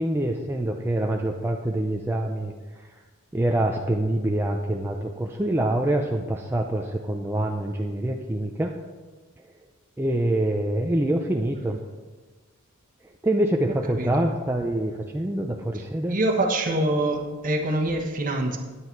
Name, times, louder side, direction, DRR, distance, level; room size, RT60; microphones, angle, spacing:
voice 1, 0.0-2.9 3.3-8.7 10.0-11.8 13.2-16.2, right 1 dB, 10° right, 1 dB, 0.5 m, -25 dB
voice 2, 13.9-14.3 16.1-18.6, right 1 dB, 40° right, 2 dB, 1.2 m, -25 dB
9.8 x 8.4 x 4.5 m, 1.3 s
head